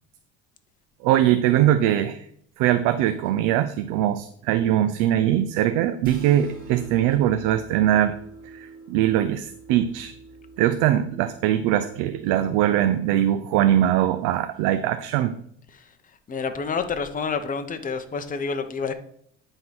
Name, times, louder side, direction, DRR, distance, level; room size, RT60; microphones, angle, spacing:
voice 1, 1.0-2.3 2.6-8.2 8.4-10.1 10.6-15.3, right 12 dB, 75° right, 10 dB, 0.6 m, -21 dB
sound 1, 6.0-12.5, right 3 dB, 30° right, 2.6 m, -45 dB
voice 2, 16.3-18.9, left 5 dB, 25° left, 8 dB, 0.9 m, -28 dB
8.8 x 3.9 x 6.0 m, 0.68 s
supercardioid pair, 110°, 31 cm